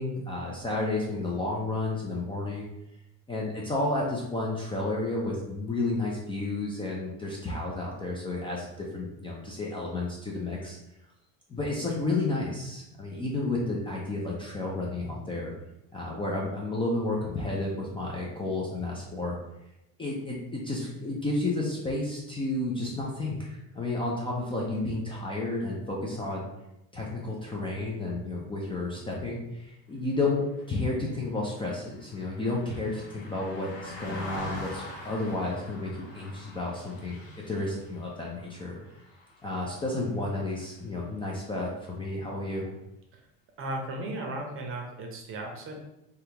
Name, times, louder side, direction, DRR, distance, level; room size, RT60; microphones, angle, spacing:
voice 1, 0.0-2.7 3.3-10.8 11.5-15.5 15.9-19.4 20.0-26.5 26.9-38.8 39.4-42.7, left 2 dB, 15° left, -3 dB, 0.4 m, -31 dB
Car passing by, 30.6-40.2 40.6-40.8, left 2 dB, 70° left, 1.5 m, -44 dB
voice 2, 43.6-45.8, right 2 dB, 35° right, 2 dB, 0.7 m, -36 dB
3.5 x 2.3 x 2.8 m, 0.88 s
supercardioid pair, 115°, 37 cm